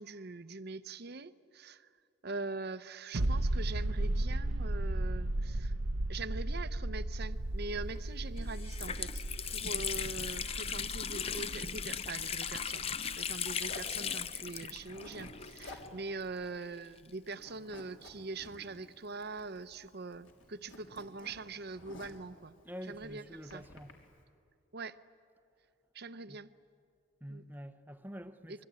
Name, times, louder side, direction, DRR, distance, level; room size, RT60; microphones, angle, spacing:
voice 1, 0.0-1.9 2.2-5.7 6.1-22.5 22.9-23.6 24.7-25.0 25.9-26.5 27.3-27.4 28.5-28.7, right 3 dB, 50° right, 0.8 m, -43 dB
sound 1, 3.1-14.5 14.8-14.9, right 1 dB, 80° right, 0.9 m, -36 dB
Water tap faucet, 7.9-8.0 8.4-16.1 16.3-16.4 17.3-18.8, left 7 dB, 30° left, 0.6 m, -38 dB
Zipper (clothing), 13.6-14.0 14.7-15.3 15.6-15.9 16.2-16.3 16.7-17.1 17.4-18.5 19.2-19.9 20.1-22.3 22.9-23.9, left 2 dB, 65° left, 3.6 m, -52 dB
voice 2, 22.6-23.9 26.3-26.4 27.2-28.7, equal, 10° right, 0.7 m, -47 dB
26.5 x 22.5 x 9.6 m
head